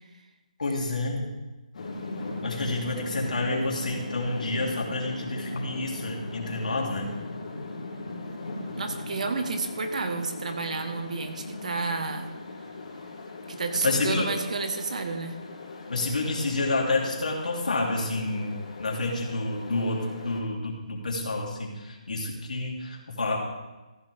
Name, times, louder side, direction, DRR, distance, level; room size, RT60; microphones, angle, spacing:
voice 1, 0.6-1.3 2.4-7.1 13.8-14.3 15.9-23.4, left 2 dB, 75° left, -1 dB, 3.1 m, -29 dB
sound 1, 1.7-20.4, left 2 dB, 55° left, 3.4 m, -39 dB
voice 2, 8.8-12.3 13.5-15.4, right 4 dB, 60° right, 6 dB, 1.4 m, -31 dB
14.5 x 10.5 x 3.5 m, 1.1 s
hypercardioid pair, 160°, 4 cm